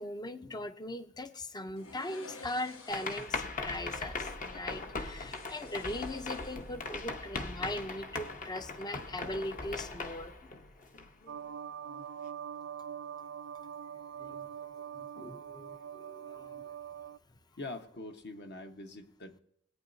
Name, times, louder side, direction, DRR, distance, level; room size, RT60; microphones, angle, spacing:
voice 1, 0.0-10.5 11.9-12.0 14.2-14.5 14.9-16.6, left 1 dB, 20° left, 10 dB, 0.5 m, -40 dB
sound 1, 1.8-3.4 5.0-6.9 7.2-7.4, left 3 dB, 80° left, 1.2 m, -51 dB
sound 2, 2.9-11.3, left 3 dB, 40° left, 0.9 m, -40 dB
sound 3, 11.3-17.2, right 8 dB, 65° right, 0.3 m, -43 dB
voice 2, 17.6-19.4, left 2 dB, 55° left, 6 dB, 1.2 m, -44 dB
21.0 x 8.9 x 2.7 m, 0.71 s
head